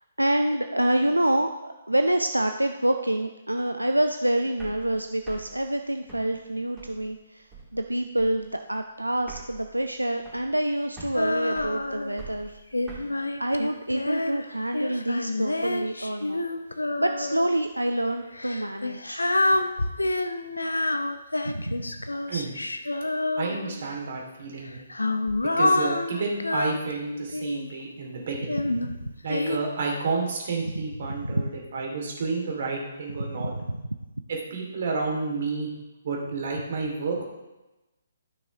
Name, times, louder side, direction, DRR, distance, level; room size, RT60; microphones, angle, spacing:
voice 1, 0.2-7.5 7.7-12.6 13.0-13.1 13.4-16.4 17.0-19.2 21.4-22.1 28.8-29.1 31.2-31.4 33.2-33.9, right 1 dB, 90° right, 6 dB, 0.5 m, -27 dB
sound 1, 4.4-7.1 7.5-7.9 8.2-8.6 8.8-8.9 9.1-10.7 11.0-13.0, right 4 dB, 15° right, 3.1 m, -45 dB
Female singing, 11.2-12.2 12.7-17.6 18.3-23.9 24.7-27.8 28.5-29.6, left 2 dB, 80° left, 0.6 m, -28 dB
voice 2, 23.4-24.8 25.6-28.6 29.2-33.5 34.3-35.7 36.0-37.2, right 4 dB, 50° right, 0 dB, 2.5 m, -30 dB
13.0 x 6.1 x 3.6 m, 1.0 s
figure-of-eight pair, 135°, 0 cm